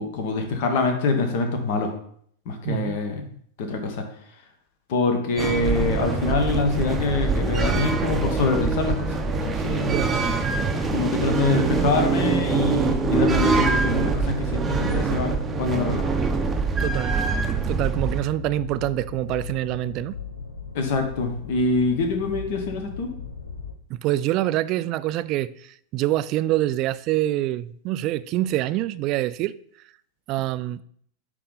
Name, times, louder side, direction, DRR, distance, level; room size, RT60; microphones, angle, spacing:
voice 1, 0.0-1.9 2.4-3.2 3.6-4.0 4.9-10.0 10.9-16.1 20.7-23.1, left 3 dB, 50° left, 1.3 m, -25 dB
voice 2, 2.6-3.0 9.7-10.2 16.8-17.2 17.7-20.2 23.9-29.5 30.3-30.8, right 15 dB, 40° right, 0.3 m, -26 dB
sound 1, 5.4-18.2, right 4 dB, 15° right, 0.7 m, -24 dB
sound 2, 6.5-23.7, left 5 dB, 80° left, 0.9 m, -37 dB
9.2 x 3.3 x 4.1 m
figure-of-eight pair, 90°, 0 cm